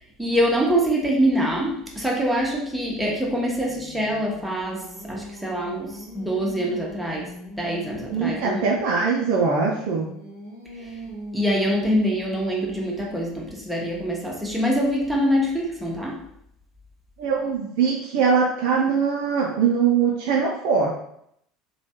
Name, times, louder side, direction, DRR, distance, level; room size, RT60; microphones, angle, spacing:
voice 1, 0.2-7.3 7.6-8.7 10.8-10.9 11.3-16.2, equal, 5° right, -2 dB, 0.8 m, -24 dB
Singing, 3.3-8.7 9.3-13.2, equal, 85° left, 0.8 m, -41 dB
voice 2, 8.1-10.1 17.2-20.9, right 5 dB, 55° right, -2 dB, 0.4 m, -22 dB
3.1 x 2.2 x 2.8 m, 0.74 s
figure-of-eight pair, 65°, 0 cm